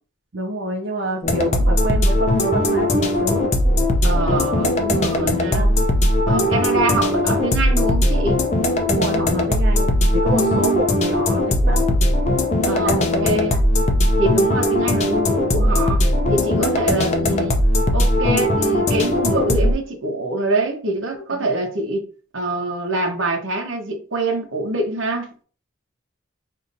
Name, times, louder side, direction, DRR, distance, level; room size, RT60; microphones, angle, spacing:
voice 1, 0.3-3.5 5.4-5.7 8.9-11.8 12.7-13.7 21.1-21.2, right 1 dB, 60° right, 0.6 m, -27 dB
sound 1, 1.2-19.7, left 1 dB, 35° left, 0.6 m, -19 dB
voice 2, 4.0-5.7 6.3-8.4 10.3-10.9 12.7-13.6 14.2-16.0 16.3-17.6 17.9-22.0 22.3-25.3, right 2 dB, 85° right, 1.0 m, -24 dB
5.4 x 2.8 x 2.6 m
head